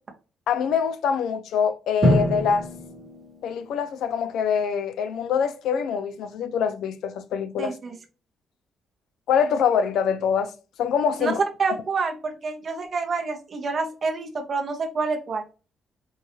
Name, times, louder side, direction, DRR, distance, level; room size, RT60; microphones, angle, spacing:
voice 1, 0.5-2.7 3.4-7.7 9.3-10.5 10.8-11.4, left 7 dB, 80° left, 0.3 m, -24 dB
Drum, 2.0-4.0, equal, 20° right, 1.0 m, -25 dB
voice 2, 7.6-7.9 11.2-15.4, right 4 dB, 35° right, 0.6 m, -27 dB
4.4 x 2.3 x 2.8 m
cardioid pair, 160°, 0 cm